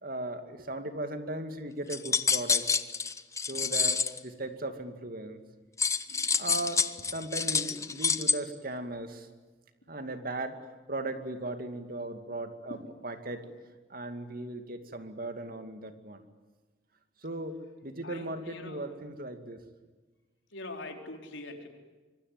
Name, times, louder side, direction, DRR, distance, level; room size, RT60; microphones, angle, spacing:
voice 1, 0.0-2.7 3.5-5.4 6.4-6.8 7.1-9.3 9.9-10.6 10.9-12.8 13.0-13.5 13.9-16.2 17.2-19.6, right 2 dB, 50° right, 8 dB, 2.5 m, -37 dB
sound 1, 1.9-4.2 5.8-8.3, left 5 dB, 15° left, 0.9 m, -27 dB
voice 2, 6.0-6.6 12.7-12.9 18.0-18.9 20.5-21.7, left 2 dB, 80° left, 4 dB, 4.3 m, -44 dB
25.5 x 24.0 x 9.7 m, 1.3 s
head